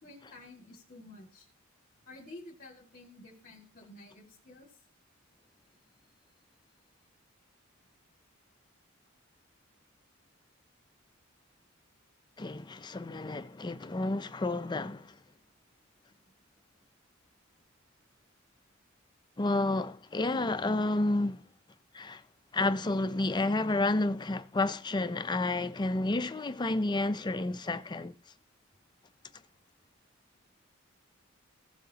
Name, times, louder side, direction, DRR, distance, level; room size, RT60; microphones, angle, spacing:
voice 1, 0.0-1.5 2.1-4.8, left 2 dB, 45° left, 2.0 m, -51 dB
voice 2, 12.4-15.1 19.4-21.4 21.9-22.2 22.5-28.1, left 2 dB, 20° left, 0.4 m, -30 dB
16.0 x 7.2 x 2.8 m
head